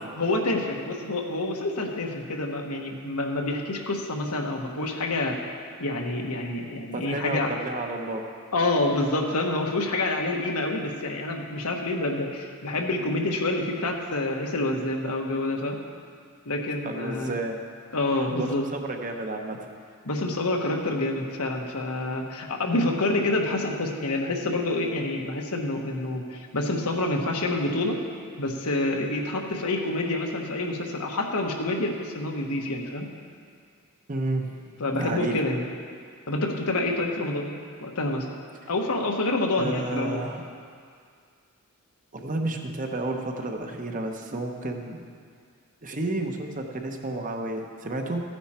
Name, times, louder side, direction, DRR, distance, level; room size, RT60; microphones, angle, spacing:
voice 1, 0.2-5.4 5.8-7.5 8.5-15.8 16.4-17.3 17.9-18.6 20.0-28.0 28.4-33.1 34.8-35.6 36.3-37.5 37.8-38.3 38.7-40.3, left 2 dB, 85° left, 1 dB, 1.4 m, -27 dB
voice 2, 6.9-8.2 16.8-17.6 18.4-19.6 34.1-34.5 34.9-35.4 39.6-40.4 42.1-45.0 45.8-48.2, right 2 dB, 35° right, 3 dB, 0.9 m, -31 dB
15.0 x 9.4 x 4.4 m, 2.2 s
head